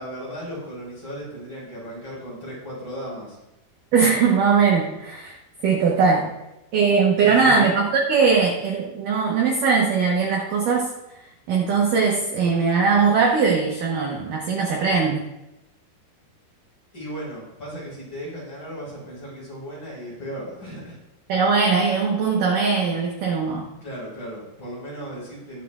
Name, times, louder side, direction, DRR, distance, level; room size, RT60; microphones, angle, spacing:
voice 1, 0.0-3.4 7.2-7.6 16.9-21.0 23.8-25.6, equal, 25° left, -6 dB, 5.1 m, -36 dB
voice 2, 3.9-5.4 5.6-6.3 6.7-10.9 11.5-15.3 21.3-23.7, right 5 dB, 70° right, -2 dB, 2.0 m, -20 dB
21.0 x 7.5 x 2.4 m, 0.91 s
omnidirectional pair, 5.3 m